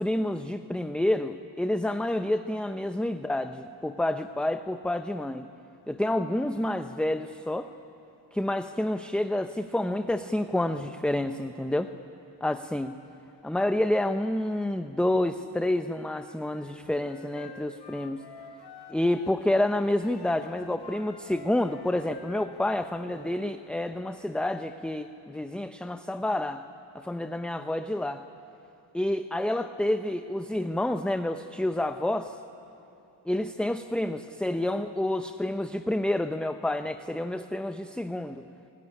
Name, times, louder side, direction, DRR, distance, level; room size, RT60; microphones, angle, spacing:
voice 1, 0.0-5.5 5.9-7.7 8.3-11.9 12.4-12.9 13.4-18.2 18.9-26.6 26.9-28.2 28.9-32.4 33.3-38.4, left 1 dB, ahead, 8 dB, 0.9 m, -29 dB
Wind instrument woodwind instrument, 16.5-19.7 20.0-23.4, left 4 dB, 70° left, 4.3 m, -48 dB
29.0 x 20.0 x 9.9 m, 2.9 s
cardioid pair, 80°, 43 cm